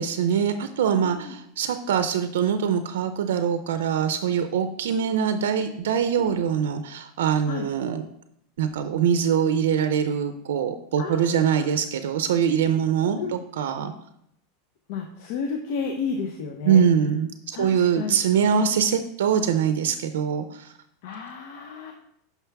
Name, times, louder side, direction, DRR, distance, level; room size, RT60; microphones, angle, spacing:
voice 1, 0.0-8.0 8.6-13.9 16.6-20.7, right 7 dB, 90° right, 9 dB, 0.4 m, -23 dB
voice 2, 1.0-1.3 6.2-6.4 7.5-7.7 11.0-11.7 13.2-13.4 14.9-16.8 17.5-18.2 21.0-21.9, left 5 dB, 65° left, 3 dB, 0.7 m, -32 dB
5.8 x 5.8 x 3.4 m, 0.74 s
supercardioid pair, 140°, 0 cm